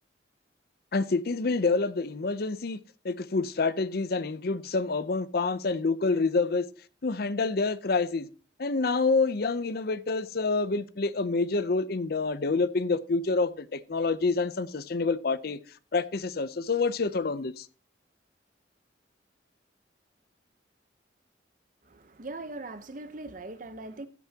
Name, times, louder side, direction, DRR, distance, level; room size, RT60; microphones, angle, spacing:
voice 1, 0.9-2.8 3.0-6.7 7.0-8.3 8.6-15.6 15.9-17.7, left 3 dB, 55° left, 0.6 m, -27 dB
voice 2, 21.8-24.1, right 2 dB, 45° right, 0.9 m, -40 dB
15.5 x 9.2 x 2.9 m
head